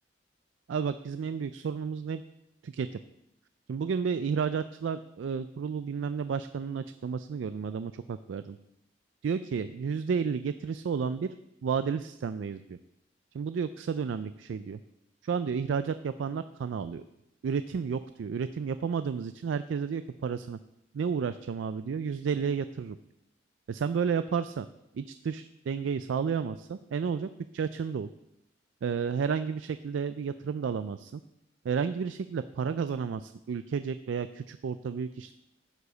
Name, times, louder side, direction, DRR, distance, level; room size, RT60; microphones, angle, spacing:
voice 1, 0.7-2.2 2.6-2.9 3.7-8.6 9.2-11.3 11.6-12.8 13.3-14.8 15.2-17.0 17.4-20.6 20.9-23.0 23.7-24.7 24.9-28.1 28.8-31.2 31.6-35.3, right 6 dB, 90° right, 12 dB, 0.3 m, -32 dB
11.0 x 4.9 x 6.7 m, 0.86 s
head